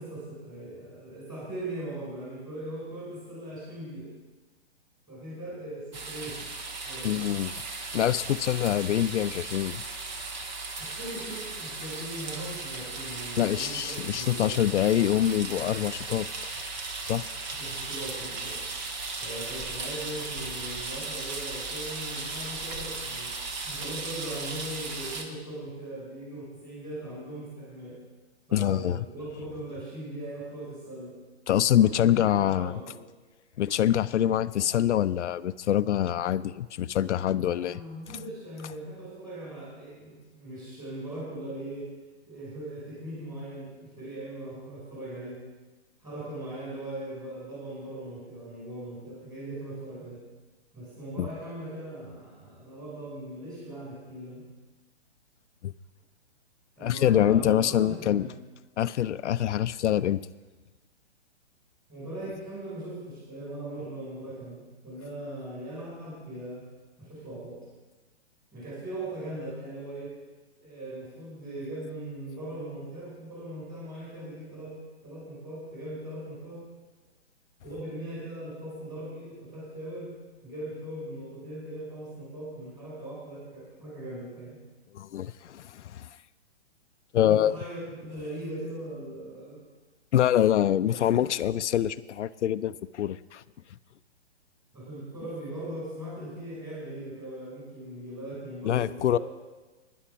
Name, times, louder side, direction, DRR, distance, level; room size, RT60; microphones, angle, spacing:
voice 1, 0.0-4.1 5.1-6.4 6.8-7.3 10.8-14.5 17.5-18.6 19.2-23.3 23.6-28.0 28.5-31.1 31.7-32.9 37.4-41.9 42.3-45.4 46.0-50.2 50.7-54.5 56.8-58.4 61.9-66.7 67.0-67.6 68.5-70.2 70.6-74.7 75.0-76.6 77.6-80.1 80.4-84.6 87.2-89.6 94.7-99.2, right 1 dB, 10° right, -6 dB, 5.3 m, -39 dB
sound 1, 5.9-25.2, right 3 dB, 40° right, 1.5 m, -36 dB
voice 2, 7.0-7.5 7.9-9.8 13.4-16.3 17.0-17.3 28.5-29.0 31.5-32.8 33.6-37.8 51.2-51.3 55.6-55.7 56.8-58.3 58.8-60.2 84.9-86.1 87.1-87.6 90.1-93.4 98.6-99.2, left 11 dB, 80° left, 13 dB, 0.5 m, -25 dB
11.5 x 10.0 x 5.9 m, 1.2 s
hypercardioid pair, 165°, 35 cm